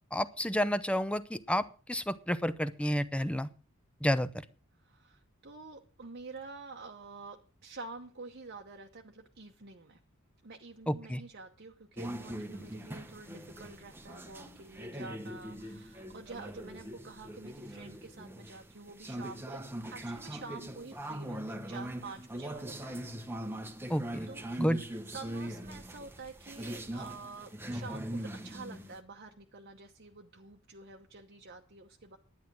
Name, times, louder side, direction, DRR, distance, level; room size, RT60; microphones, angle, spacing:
voice 1, 0.1-3.5 4.0-4.3 10.9-11.2 23.9-24.3 24.6-24.8, equal, 5° left, 14 dB, 0.6 m, -30 dB
voice 2, 4.8-10.0 10.4-23.2 24.3-32.2, right 3 dB, 50° right, 2 dB, 0.9 m, -48 dB
sound 1, 12.0-29.0, right 1 dB, 10° right, 1.0 m, -41 dB
11.0 x 9.6 x 6.1 m, 0.37 s
head